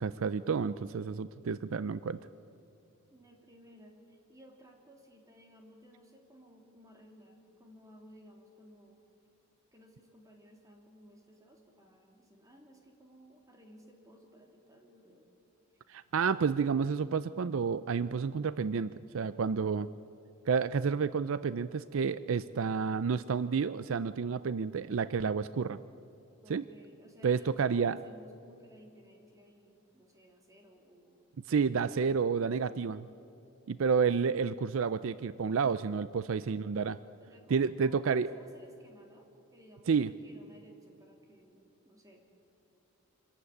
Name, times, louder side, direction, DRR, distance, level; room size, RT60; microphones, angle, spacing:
voice 1, 0.0-2.2 15.9-19.9 20.5-25.8 26.5-26.6 27.2-28.0 31.5-33.1 33.7-37.0 37.5-38.3 39.9-40.1, right 5 dB, 65° right, 16 dB, 0.4 m, -30 dB
voice 2, 3.1-9.0 9.7-15.3 15.7-15.8 26.4-31.2 36.1-36.4 37.2-42.2, equal, 15° right, 2 dB, 2.9 m, -58 dB
26.0 x 14.5 x 9.8 m, 2.8 s
head